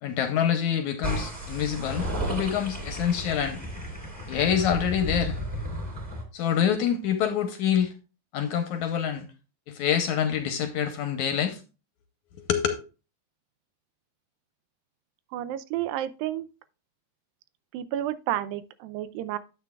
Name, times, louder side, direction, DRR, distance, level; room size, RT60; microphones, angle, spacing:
voice 1, 0.0-3.6 4.3-5.4 6.3-7.9 8.3-9.3 9.7-11.6 12.4-12.7, left 9 dB, 75° left, 1.8 m, -26 dB
sound 1, 1.0-6.2, right 1 dB, 15° right, 2.3 m, -33 dB
voice 2, 15.3-16.5 17.7-19.4, right 12 dB, 85° right, 2.3 m, -31 dB
11.0 x 7.7 x 2.3 m
omnidirectional pair, 4.0 m